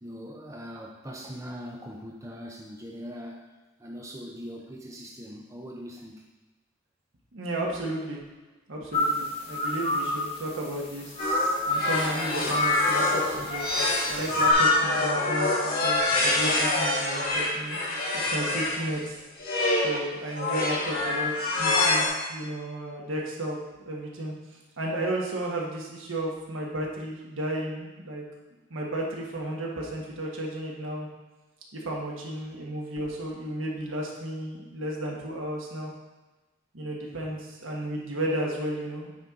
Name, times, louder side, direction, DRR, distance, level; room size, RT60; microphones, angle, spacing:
voice 1, 0.0-3.5 3.8-6.3, equal, 15° right, -1 dB, 0.7 m, -41 dB
voice 2, 7.3-8.2 8.7-11.2 11.7-17.8 18.3-19.1 19.8-23.6 23.8-24.3 24.8-28.2 28.7-31.1 31.8-35.9 36.7-39.2, right 1 dB, 75° right, -2 dB, 1.4 m, -33 dB
sound 1, 8.9-14.5, left 1 dB, 30° left, 1.1 m, -29 dB
sound 2, 11.2-18.8 19.4-20.0 20.4-22.1, left 2 dB, 50° left, 1.6 m, -26 dB
9.1 x 4.4 x 3.8 m, 1.2 s
head